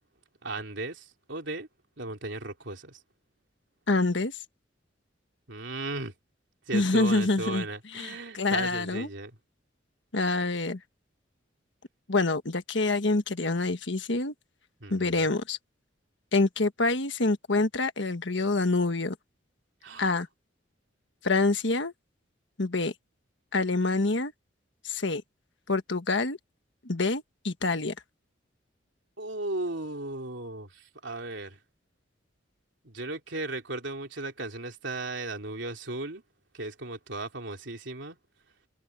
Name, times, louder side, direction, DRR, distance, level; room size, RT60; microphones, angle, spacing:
voice 1, 0.4-1.7 2.0-3.0 5.5-6.1 6.7-9.4 14.8-15.4 19.8-20.1 29.2-31.6 32.8-36.2 36.5-38.2, right 2 dB, 70° right, 3.2 m, -36 dB
voice 2, 3.9-4.3 6.7-7.7 7.9-9.1 10.1-10.8 12.1-14.3 14.9-15.6 16.3-19.1 20.0-20.3 21.2-21.9 22.6-22.9 23.5-24.3 24.8-25.2 25.7-26.4 26.8-27.9, left 3 dB, 70° left, 1.5 m, -26 dB
head